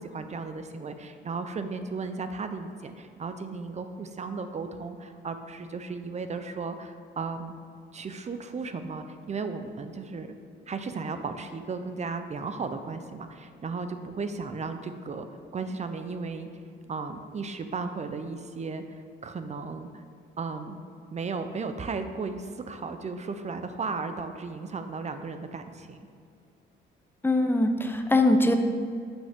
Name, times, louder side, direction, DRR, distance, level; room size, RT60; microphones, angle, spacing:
voice 1, 0.0-7.5 7.9-10.3 10.7-15.3 15.5-16.5 16.9-20.0 20.4-20.8 21.1-26.0, right 4 dB, 35° right, 8 dB, 0.6 m, -35 dB
voice 2, 27.2-28.5, left 2 dB, 10° left, 5 dB, 0.7 m, -22 dB
8.1 x 6.1 x 3.6 m, 2.4 s
cardioid pair, 90°, 20 cm